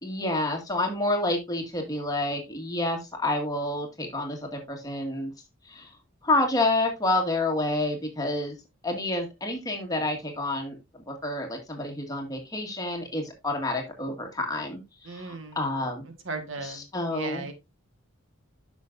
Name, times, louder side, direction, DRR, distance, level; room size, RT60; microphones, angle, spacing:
voice 1, 0.0-5.3 5.6-5.9 6.2-8.6 8.8-10.8 11.1-16.1 16.6-17.5, left 2 dB, 15° left, 2 dB, 1.9 m, -29 dB
voice 2, 15.0-15.6 16.2-16.8 17.1-17.5, right 3 dB, 60° right, 7 dB, 1.5 m, -36 dB
9.9 x 6.1 x 2.6 m, 0.22 s
head